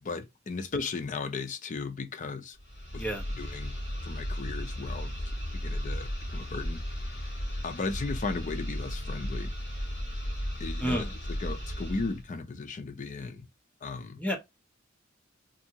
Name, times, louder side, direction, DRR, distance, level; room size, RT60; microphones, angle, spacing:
voice 1, 0.0-2.6 2.9-3.0 3.4-3.8 4.0-5.1 5.6-6.8 7.6-9.5 10.6-11.1 11.4-13.5 13.8-14.2, left 4 dB, 40° left, 0.5 m, -36 dB
sound 1, 2.6-12.2, equal, 60° left, 1.1 m, -35 dB
voice 2, 10.8-11.1 14.2-14.4, equal, 10° left, 0.7 m, -30 dB
2.7 x 2.6 x 2.6 m
head